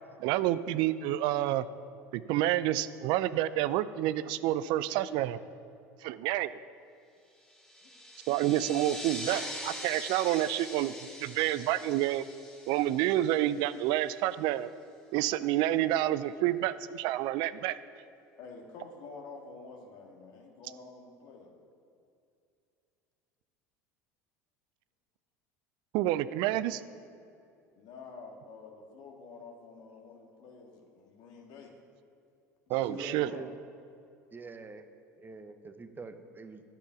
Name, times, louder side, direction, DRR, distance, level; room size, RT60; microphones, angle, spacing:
voice 1, 0.2-1.7 2.1-5.4 6.0-6.5 8.3-10.9 11.2-12.2 12.7-14.7 15.1-17.8 25.9-26.8 32.7-33.3, right 14 dB, 60° right, 15 dB, 0.4 m, -29 dB
sound 1, 7.5-13.7, equal, 5° left, 1.4 m, -43 dB
voice 2, 18.4-21.6 27.8-31.7 32.7-33.4, left 4 dB, 60° left, 1 dB, 1.8 m, -49 dB
voice 3, 32.7-33.5 34.3-34.8 35.2-36.6, right 4 dB, 20° right, 9 dB, 0.7 m, -44 dB
10.5 x 6.9 x 5.8 m, 2.5 s
hypercardioid pair, 75°, 9 cm